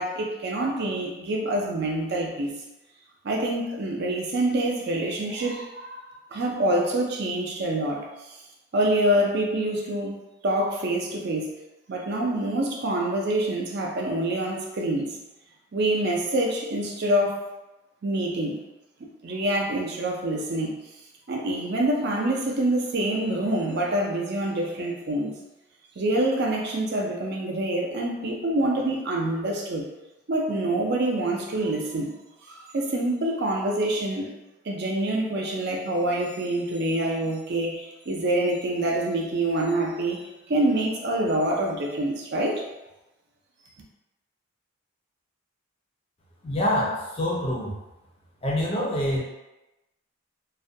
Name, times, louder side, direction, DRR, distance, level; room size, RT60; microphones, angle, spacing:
voice 1, 0.0-2.5 3.2-8.4 8.7-10.2 10.4-11.5 11.9-15.2 15.7-17.5 18.0-18.6 19.2-20.8 21.3-25.3 26.0-29.9 30.3-32.2 32.4-34.3 34.6-42.6, right 1 dB, 50° right, 0 dB, 0.4 m, -26 dB
voice 2, 46.4-47.7 48.4-49.2, left 1 dB, 25° left, -4 dB, 0.4 m, -26 dB
2.3 x 2.1 x 2.6 m, 0.99 s
head